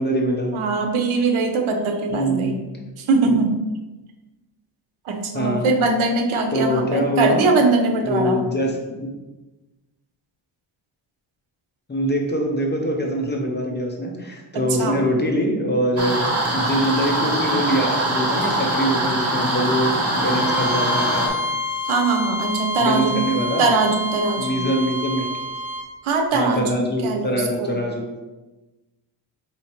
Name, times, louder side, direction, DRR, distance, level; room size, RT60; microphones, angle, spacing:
voice 1, 0.0-0.6 2.1-2.6 3.3-3.4 5.3-5.7 6.5-7.4 8.0-9.1 11.9-16.2 16.5-21.3 22.8-23.7 24.4-25.3 26.3-28.1, equal, 20° left, 0 dB, 0.7 m, -23 dB
voice 2, 0.5-2.6 3.0-3.6 5.0-8.4 14.5-15.0 21.8-23.3 23.6-24.6 26.0-27.8, right 3 dB, 85° right, 5 dB, 0.7 m, -21 dB
sound 1, 16.0-21.3, right 1 dB, 30° right, 0.8 m, -22 dB
Bowed string instrument, 20.1-25.9, left 2 dB, 5° right, 0.9 m, -28 dB
5.4 x 2.8 x 2.9 m, 1.1 s
wide cardioid pair, 115°, 47 cm